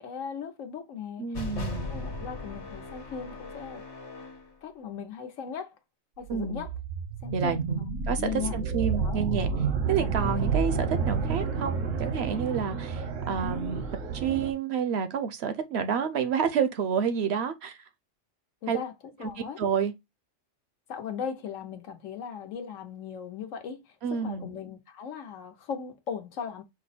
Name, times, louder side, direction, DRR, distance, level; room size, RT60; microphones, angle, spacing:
voice 1, 0.0-1.3 1.9-3.8 4.6-5.8 6.2-6.7 7.2-8.6 9.0-9.2 9.9-10.1 18.6-18.9 19.2-19.6 20.9-26.6, left 7 dB, 80° left, 1.2 m, -38 dB
voice 2, 1.2-1.9 6.3-6.6 7.3-9.5 9.9-13.8 14.1-17.8 18.7-18.8 19.2-19.3 19.6-19.9 24.0-24.5, right 7 dB, 65° right, 0.7 m, -29 dB
sound 1, 1.3-4.5, left 2 dB, 65° left, 1.4 m, -38 dB
sound 2, 6.2-14.5, right 5 dB, 80° right, 1.3 m, -30 dB
5.0 x 2.0 x 4.1 m
omnidirectional pair, 1.3 m